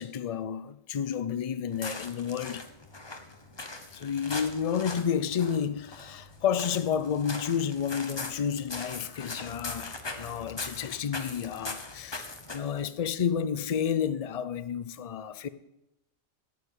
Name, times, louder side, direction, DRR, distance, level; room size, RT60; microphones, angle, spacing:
voice 1, 0.0-2.7 3.9-15.5, left 8 dB, 45° left, 0.5 m, -31 dB
sound 1, 1.7-12.8, left 2 dB, 25° left, 1.0 m, -41 dB
13.0 x 6.8 x 8.5 m
omnidirectional pair, 1.3 m